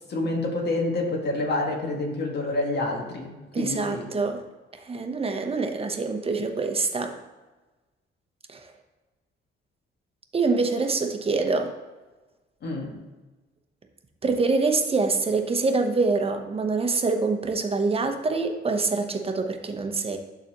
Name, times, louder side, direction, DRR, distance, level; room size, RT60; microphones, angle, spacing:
voice 1, 0.1-4.1 12.6-13.0, left 2 dB, 55° left, 0 dB, 1.9 m, -28 dB
voice 2, 3.5-4.4 4.7-7.2 8.5-8.6 10.3-11.7 14.2-20.2, right 3 dB, 30° right, 5 dB, 0.9 m, -25 dB
12.0 x 4.1 x 3.0 m, 1.2 s
cardioid pair, 90°, 20 cm